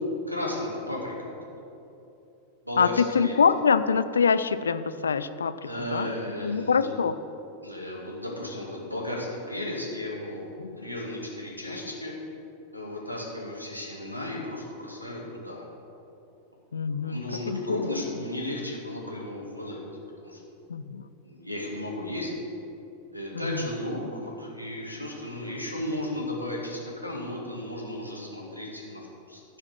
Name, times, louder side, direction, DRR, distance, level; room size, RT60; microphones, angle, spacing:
voice 1, 0.3-1.4 2.6-3.3 5.6-6.9 7.6-10.5 10.8-12.1 12.7-15.6 16.9-19.8 20.2-20.4 21.2-22.3 23.1-29.4, left 1 dB, 90° right, -2 dB, 1.9 m, -34 dB
voice 2, 2.8-5.5 5.9-6.1 6.4-7.1 16.7-17.6 20.7-21.0 23.4-23.6, left 6 dB, 70° left, 12 dB, 0.4 m, -24 dB
14.0 x 4.8 x 6.3 m, 2.8 s
figure-of-eight pair, 90°, 0 cm